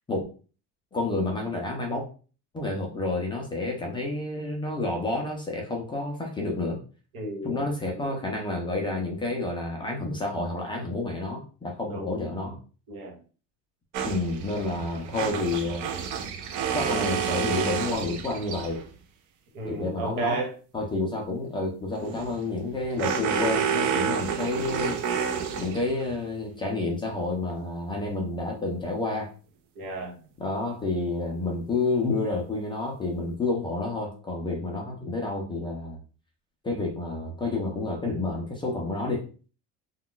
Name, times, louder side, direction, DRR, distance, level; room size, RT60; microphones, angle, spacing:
voice 1, 0.9-2.0 2.5-6.8 7.4-12.6 14.0-15.8 16.7-18.8 19.7-20.4 20.7-25.0 25.6-29.3 30.4-36.0 36.6-39.2, left 2 dB, 15° left, 0 dB, 0.3 m, -29 dB
voice 2, 7.1-8.2 11.9-12.1 12.9-13.2 16.8-17.1 19.5-20.5 29.7-30.2, right 3 dB, 85° right, 1 dB, 1.2 m, -33 dB
sound 1, 13.9-18.9 21.9-26.1, right 7 dB, 55° right, 0.5 m, -30 dB
2.3 x 2.2 x 3.7 m, 0.37 s
cardioid pair, 165°, 35 cm